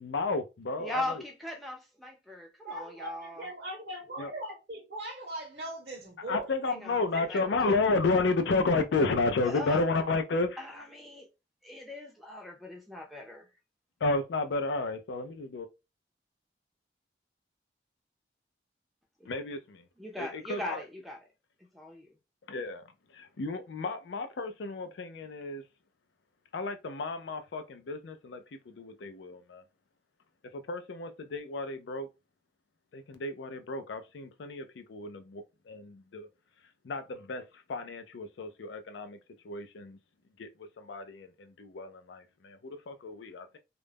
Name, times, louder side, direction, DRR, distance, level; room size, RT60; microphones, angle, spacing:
voice 1, 0.0-1.2 4.2-4.3 6.3-10.6 14.0-15.7 19.3-19.8 20.2-20.8 22.5-22.8 23.1-25.6 26.5-29.6 30.5-32.1 32.9-36.3 36.8-37.4 37.7-39.2 39.4-40.0 40.4-40.5 40.8-43.6, left 3 dB, 80° left, 0.4 m, -32 dB
voice 2, 0.8-3.5 6.6-7.4 9.4-9.8 10.6-11.3 11.6-13.5 19.2-19.3 20.0-21.2 21.7-22.1, left 1 dB, ahead, 0.5 m, -39 dB
voice 3, 2.6-6.5 7.1-7.7, right 1 dB, 55° right, 0.7 m, -40 dB
2.3 x 2.0 x 3.3 m
head